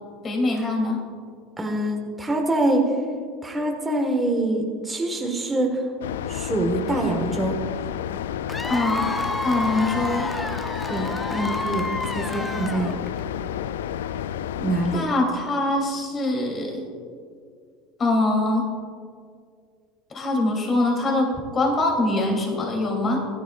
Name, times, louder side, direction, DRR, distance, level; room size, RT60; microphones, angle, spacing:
voice 1, 0.2-1.0 8.7-10.3 14.9-16.8 18.0-18.7 20.1-23.2, left 2 dB, 35° left, 0 dB, 3.0 m, -23 dB
voice 2, 1.6-2.9 3.4-5.8 6.3-7.6 10.9-12.9 14.6-15.1, right 2 dB, 15° right, 1 dB, 1.6 m, -25 dB
sound 1, 6.0-15.0, left 10 dB, 90° left, 0.3 m, -31 dB
Cheering / Applause / Crowd, 8.5-13.2, left 2 dB, 10° left, 0.7 m, -30 dB
16.5 x 11.5 x 2.5 m, 2.2 s
hypercardioid pair, 90°, 0 cm